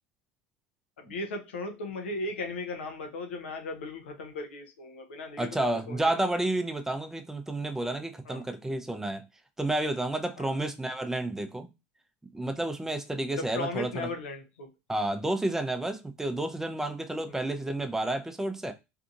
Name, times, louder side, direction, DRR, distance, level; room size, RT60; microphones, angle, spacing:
voice 1, 1.0-6.1 8.3-8.4 10.4-10.6 13.4-14.7, left 2 dB, 85° left, 0.6 m, -37 dB
voice 2, 5.4-9.2 9.6-11.7 12.3-14.1 14.9-18.7, right 1 dB, 5° right, 0.5 m, -30 dB
2.6 x 2.6 x 2.4 m
hypercardioid pair, 85°, 6 cm